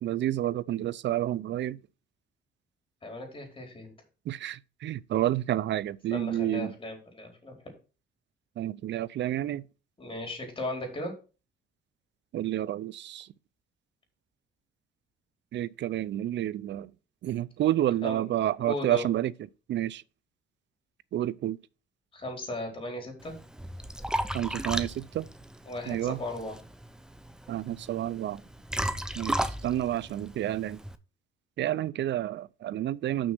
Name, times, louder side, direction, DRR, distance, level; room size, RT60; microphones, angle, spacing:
voice 1, 0.0-1.8 4.3-6.7 8.6-9.6 12.3-13.3 15.5-16.9 17.2-19.3 19.7-20.0 21.1-21.6 24.3-25.3 25.9-26.2 27.5-28.4 29.2-30.8 31.6-33.3, right 13 dB, 65° right, 0.6 m, -29 dB
voice 2, 3.0-3.9 6.1-7.7 10.0-11.1 18.0-18.2 18.6-19.1 22.1-23.3 25.7-26.6, left 1 dB, 25° left, 4.4 m, -36 dB
Liquid, 23.2-31.0, right 1 dB, 5° right, 0.8 m, -35 dB
6.3 x 6.3 x 6.1 m
cardioid pair, 90°, 20 cm